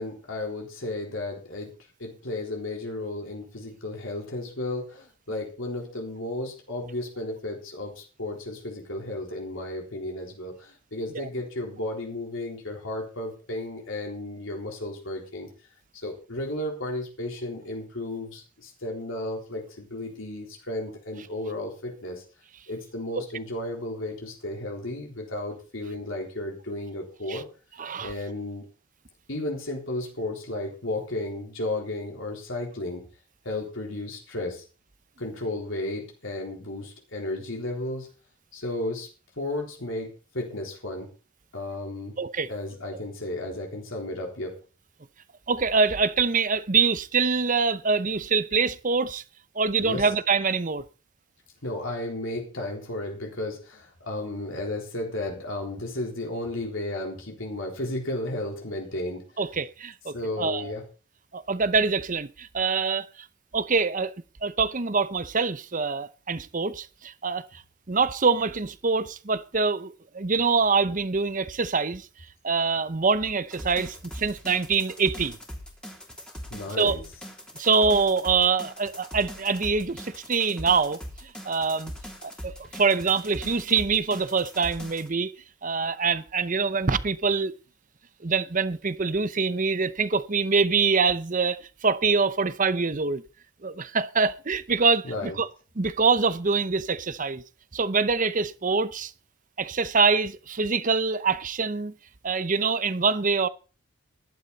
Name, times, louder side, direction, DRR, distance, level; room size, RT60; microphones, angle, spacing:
voice 1, 0.0-1.7 2.0-15.5 16.0-22.2 22.7-27.5 28.0-28.6 29.3-33.0 33.4-34.6 35.2-38.1 38.5-39.1 39.4-40.1 40.3-41.1 41.5-42.1 42.5-44.6 49.8-50.1 51.6-59.2 60.1-60.8 76.5-77.1 95.0-95.4, left 1 dB, 65° left, 3.8 m, -33 dB
voice 2, 27.8-28.1 42.2-42.5 45.5-49.2 49.6-50.8 59.4-60.7 61.3-63.1 63.5-64.1 64.4-67.4 67.9-72.1 72.4-75.4 76.8-77.0 77.5-81.9 82.2-85.3 85.6-87.5 88.2-93.2 93.6-95.5 95.8-97.4 97.7-99.1 99.6-101.9 102.2-103.5, right 4 dB, 35° right, 0.8 m, -25 dB
sound 1, 73.5-85.1, equal, 5° left, 3.0 m, -41 dB
15.0 x 12.0 x 4.1 m
head